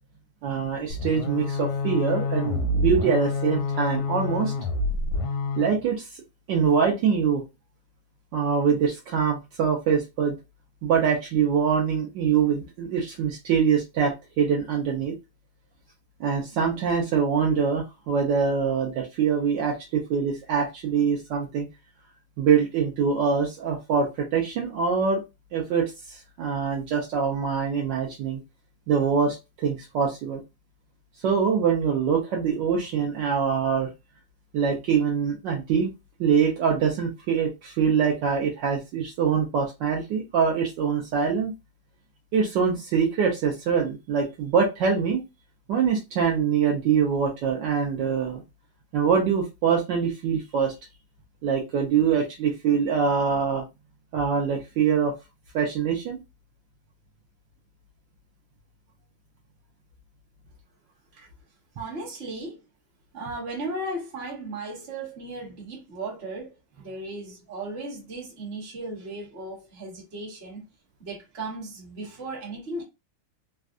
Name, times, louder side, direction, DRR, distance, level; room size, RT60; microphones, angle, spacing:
voice 1, 0.4-4.5 5.6-6.1 6.5-7.4 8.3-10.4 10.8-15.2 16.2-21.7 22.4-25.2 25.5-28.4 28.9-30.4 31.2-33.9 34.5-35.9 36.2-41.5 42.3-45.2 45.7-48.4 48.9-50.7 51.4-53.6 54.1-55.1 55.5-56.2, right 6 dB, 70° right, 1.2 m, -24 dB
sound 1, 0.9-5.8, left 3 dB, 70° left, 1.0 m, -27 dB
voice 2, 61.8-62.6 63.1-70.6 71.0-72.8, right 2 dB, 40° right, 1.1 m, -36 dB
3.5 x 2.2 x 2.4 m
omnidirectional pair, 2.3 m